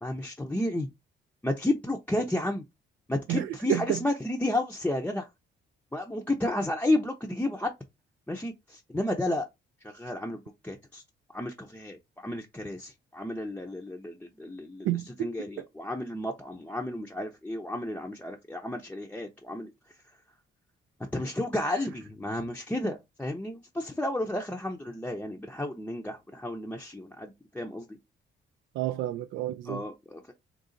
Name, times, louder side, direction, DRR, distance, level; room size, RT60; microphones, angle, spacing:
voice 1, 0.0-0.9 1.4-2.6 3.1-5.3 5.9-7.7 8.3-9.4 9.8-11.0 11.3-14.9 15.2-19.7 21.0-28.0 29.7-30.3, left 1 dB, 10° left, 0.6 m, -32 dB
voice 2, 3.3-4.0 14.8-15.7 21.7-21.8 28.7-29.8, right 13 dB, 85° right, 0.4 m, -31 dB
3.9 x 2.4 x 3.8 m
cardioid pair, 90°, 20 cm